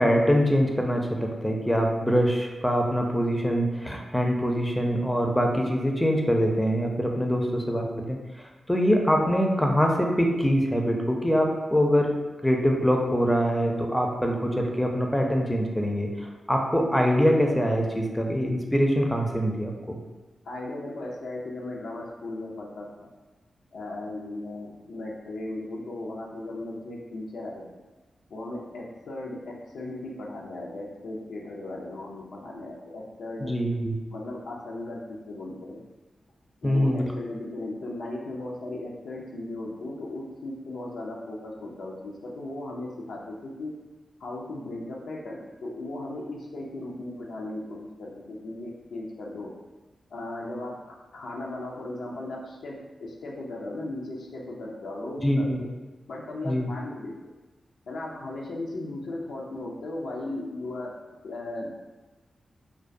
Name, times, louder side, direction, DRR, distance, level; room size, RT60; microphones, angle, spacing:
voice 1, 0.0-8.2 8.7-12.1 12.4-16.1 16.5-20.0 33.4-33.9 36.6-37.0 55.2-55.6 56.4-56.7, equal, 5° left, 1 dB, 0.4 m, -24 dB
voice 2, 20.5-23.1 23.7-27.6 28.3-33.5 34.1-35.8 36.6-43.7 44.2-49.5 50.1-55.7 56.1-57.1 57.9-60.9 61.2-61.7, left 2 dB, 80° left, -2 dB, 0.4 m, -37 dB
2.2 x 2.2 x 2.5 m, 1.2 s
supercardioid pair, 40°, 0 cm